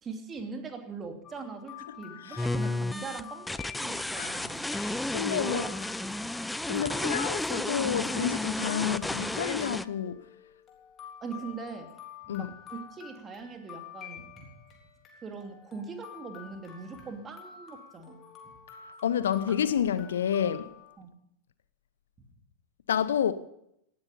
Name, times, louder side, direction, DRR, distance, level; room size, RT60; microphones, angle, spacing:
voice 1, 0.0-4.6 5.5-6.1 6.9-7.1 11.2-11.9 12.2-14.6 15.2-18.2 21.0-21.1, right 4 dB, 20° right, 2.7 m, -41 dB
sound 1, 1.2-21.0, left 8 dB, 30° left, 3.5 m, -49 dB
sound 2, 2.4-9.9, left 2 dB, 5° left, 0.5 m, -32 dB
voice 2, 4.7-5.6 6.7-10.2 12.3-12.5 19.0-20.7 22.9-23.3, left 9 dB, 65° left, 0.8 m, -29 dB
18.0 x 12.5 x 5.3 m
figure-of-eight pair, 90°, 0 cm